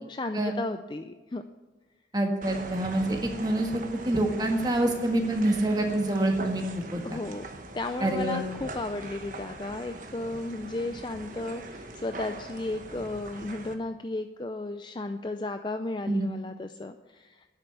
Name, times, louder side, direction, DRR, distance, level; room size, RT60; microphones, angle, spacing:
voice 1, 0.0-1.4 7.0-7.5 7.7-17.5, left 2 dB, 25° left, 8 dB, 0.4 m, -34 dB
voice 2, 2.1-6.6 6.9-7.0 8.0-8.4 16.1-16.3, right 1 dB, 20° right, 2 dB, 1.7 m, -26 dB
sound 1, 2.4-13.7, right 2 dB, 45° right, 1.2 m, -40 dB
10.5 x 8.0 x 9.8 m, 1.2 s
head